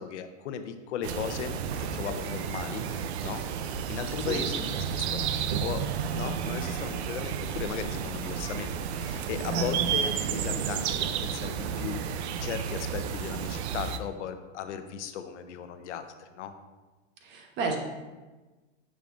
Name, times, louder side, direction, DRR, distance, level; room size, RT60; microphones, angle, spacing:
voice 1, 0.0-2.9 3.2-3.4 3.9-5.3 5.6-16.5, left 8 dB, 80° left, 9 dB, 0.7 m, -37 dB
sound 1, 1.0-14.0, right 7 dB, 65° right, 0.5 m, -31 dB
voice 2, 9.5-9.9 17.2-17.8, right 4 dB, 30° right, 2 dB, 0.9 m, -32 dB
6.8 x 6.4 x 2.5 m, 1.2 s
supercardioid pair, 145°, 35 cm